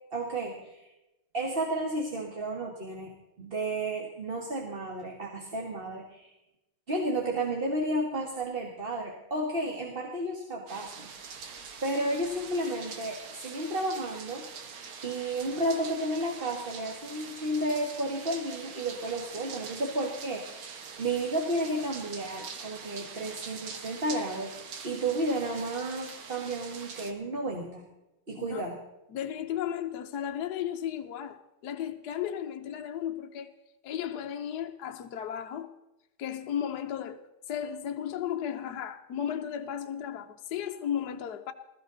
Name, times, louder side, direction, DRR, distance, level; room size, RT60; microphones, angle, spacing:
voice 1, 0.1-0.9 1.3-3.1 3.4-6.3 6.9-11.1 11.8-14.4 15.0-24.5 24.8-27.8 28.3-28.8, right 1 dB, 30° right, 1.7 m, -32 dB
sound 1, 10.7-27.1, right 6 dB, 80° right, 2.2 m, -44 dB
voice 2, 28.4-28.7 29.1-33.5 33.8-35.7 36.2-37.2 37.5-41.5, left 9 dB, 60° left, 1.2 m, -34 dB
20.5 x 13.5 x 3.9 m
omnidirectional pair, 2.2 m